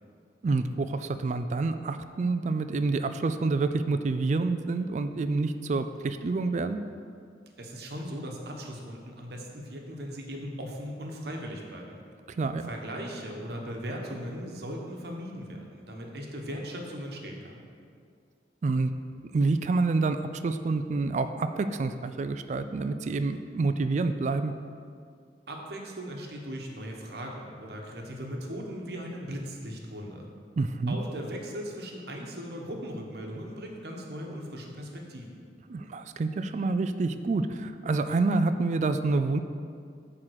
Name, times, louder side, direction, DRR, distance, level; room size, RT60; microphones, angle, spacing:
voice 1, 0.4-6.8 12.3-12.7 18.6-18.9 19.3-24.5 30.6-31.0 35.7-39.4, right 3 dB, 40° right, 10 dB, 0.3 m, -28 dB
voice 2, 7.6-12.0 12.6-17.6 25.5-30.3 30.9-35.4, equal, 60° right, 0 dB, 1.1 m, -38 dB
8.8 x 3.7 x 6.3 m, 2.2 s
head